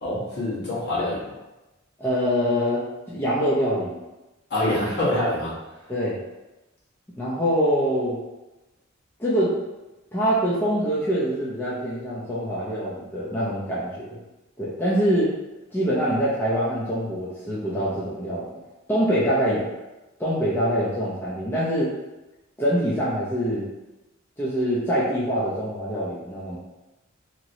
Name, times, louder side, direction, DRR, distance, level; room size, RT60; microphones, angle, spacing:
voice 1, 0.0-1.3 4.5-5.5, left 1 dB, 55° left, -8 dB, 1.3 m, -25 dB
voice 2, 2.0-4.0 5.9-6.2 7.2-8.2 9.2-9.6 10.1-14.2 14.6-15.3 15.7-18.5 18.9-19.7 20.2-21.9 22.6-23.7 24.4-26.6, equal, 10° left, -9 dB, 0.5 m, -24 dB
2.9 x 2.9 x 2.6 m, 1.0 s
head